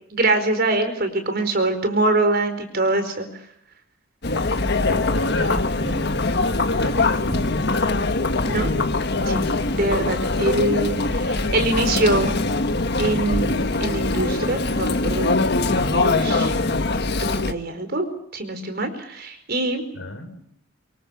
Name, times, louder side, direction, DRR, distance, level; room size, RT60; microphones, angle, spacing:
voice 1, 0.1-3.4 8.4-8.7 9.2-12.3 13.0-15.3 15.8-16.5 17.2-18.1 18.3-19.8, right 2 dB, 50° right, 8 dB, 4.7 m, -24 dB
Chatter, 4.2-17.5, left 2 dB, 55° left, 1.5 m, -22 dB
voice 2, 4.8-6.1 6.4-8.1 9.9-10.1 19.9-20.4, left 1 dB, 70° left, 8 dB, 4.8 m, -31 dB
25.0 x 22.5 x 7.2 m, 0.70 s
head